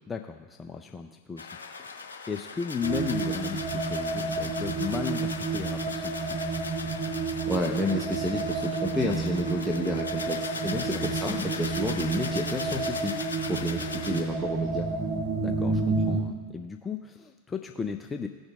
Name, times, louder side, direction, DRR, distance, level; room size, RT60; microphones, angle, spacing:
voice 1, 0.1-1.5 1.8-6.3 10.7-10.9 15.4-18.3, left 6 dB, 15° left, 5 dB, 0.5 m, -35 dB
sound 1, 1.4-14.2, left 4 dB, 80° left, 1.1 m, -39 dB
sound 2, 2.8-16.2, right 3 dB, 40° right, 2.6 m, -30 dB
voice 2, 7.5-13.2 13.5-14.9, left 1 dB, 5° right, 1 dB, 0.9 m, -30 dB
18.0 x 6.4 x 2.4 m, 1.5 s
figure-of-eight pair, 90°, 0 cm